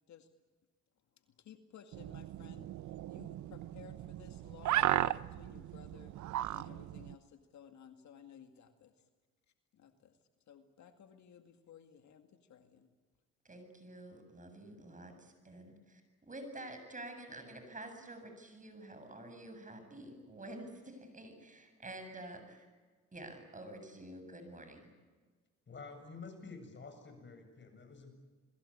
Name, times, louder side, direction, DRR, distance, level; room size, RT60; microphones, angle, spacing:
voice 1, 1.2-9.0 9.7-10.2 10.5-12.9, left 8 dB, 70° left, 6 dB, 2.2 m, -57 dB
sound 1, 1.9-7.1, right 14 dB, 70° right, 0.7 m, -36 dB
voice 2, 13.4-22.7 23.1-24.9, right 1 dB, 25° right, 7 dB, 7.5 m, -49 dB
voice 3, 25.7-28.1, left 4 dB, 40° left, 6 dB, 7.5 m, -49 dB
29.0 x 21.5 x 8.7 m, 1.4 s
cardioid pair, 90°, 30 cm